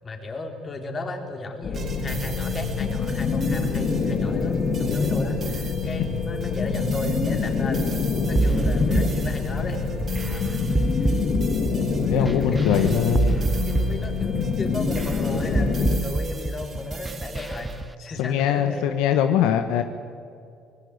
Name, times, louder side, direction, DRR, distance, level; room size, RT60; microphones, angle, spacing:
voice 1, 0.0-7.9 8.2-11.1 11.8-12.6 13.1-18.8, left 2 dB, 30° left, 4 dB, 4.1 m, -34 dB
sound 1, 1.6-16.0, left 5 dB, 50° left, 3.1 m, -25 dB
sound 2, 1.7-17.8, right 4 dB, 45° right, 4.8 m, -42 dB
sound 3, 8.4-17.9, right 3 dB, 15° right, 0.5 m, -27 dB
voice 2, 12.1-13.4 18.2-19.8, left 9 dB, 85° left, 8 dB, 1.3 m, -22 dB
25.0 x 19.0 x 8.2 m, 2.4 s
cardioid pair, 95°, 0 cm